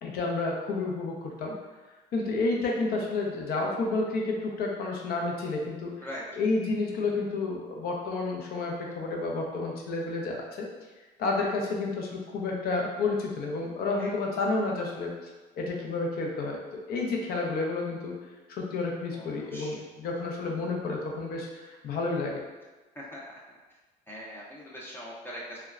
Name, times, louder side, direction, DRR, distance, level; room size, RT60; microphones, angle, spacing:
voice 1, 0.0-1.6 2.1-6.1 6.4-10.7 11.2-15.1 15.6-16.6 16.9-18.2 18.5-22.4, left 3 dB, 65° left, -1 dB, 0.6 m, -30 dB
voice 2, 19.1-19.8 23.0-23.2 24.1-25.6, equal, 15° left, -5 dB, 0.5 m, -41 dB
3.0 x 2.2 x 2.4 m, 1.2 s
cardioid pair, 110°, 17 cm